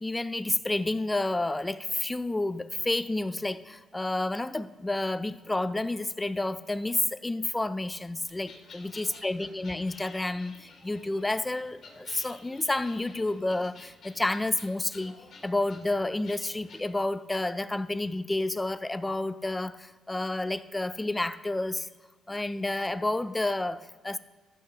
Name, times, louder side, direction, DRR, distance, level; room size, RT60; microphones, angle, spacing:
voice 1, 0.0-15.2 15.4-21.9 22.3-24.2, left 2 dB, 15° left, 14 dB, 0.4 m, -30 dB
sound 1, 8.3-16.8, left 4 dB, 55° left, 2.4 m, -52 dB
15.0 x 5.9 x 3.3 m, 1.3 s
cardioid pair, 100°, 0 cm